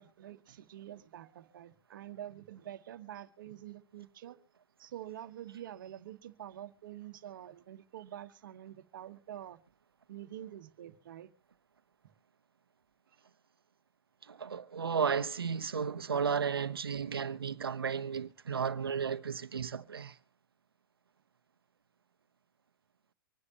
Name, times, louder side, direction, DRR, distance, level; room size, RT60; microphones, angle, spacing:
voice 1, 0.0-4.4 4.8-9.6 10.1-11.3, right 11 dB, 60° right, 1.5 m, -47 dB
voice 2, 14.3-20.1, right 6 dB, 90° right, 1.0 m, -33 dB
25.5 x 9.7 x 2.9 m
hypercardioid pair, 130°, 12 cm